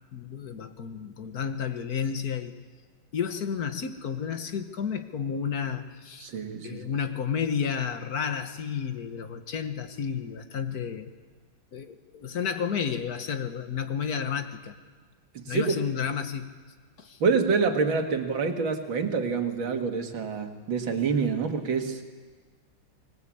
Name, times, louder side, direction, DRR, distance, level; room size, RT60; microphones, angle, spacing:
voice 1, 0.1-2.5 3.1-6.3 6.6-11.1 11.7-14.8 15.5-16.5 17.0-17.2, left 7 dB, 55° left, 8 dB, 1.6 m, -31 dB
voice 2, 6.2-6.8 15.3-15.7 17.2-22.0, right 5 dB, 80° right, 4 dB, 2.7 m, -27 dB
24.5 x 20.5 x 8.6 m, 1.5 s
omnidirectional pair, 2.1 m